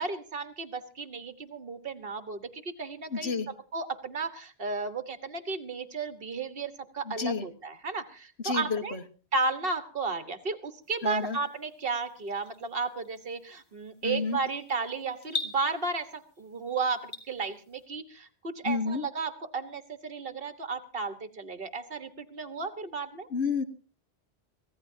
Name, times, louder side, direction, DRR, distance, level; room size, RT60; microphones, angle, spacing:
voice 1, 0.0-3.3 3.7-9.0 9.3-23.3, right 4 dB, 60° right, 10 dB, 1.5 m, -34 dB
voice 2, 3.1-3.5 7.0-7.5 8.4-9.0 11.0-11.4 14.0-14.4 18.6-19.1 23.3-23.6, left 4 dB, 75° left, 8 dB, 1.5 m, -30 dB
sound 1, 10.8-17.9, left 3 dB, 25° left, 2.1 m, -44 dB
24.5 x 16.0 x 2.7 m, 0.36 s
omnidirectional pair, 1.1 m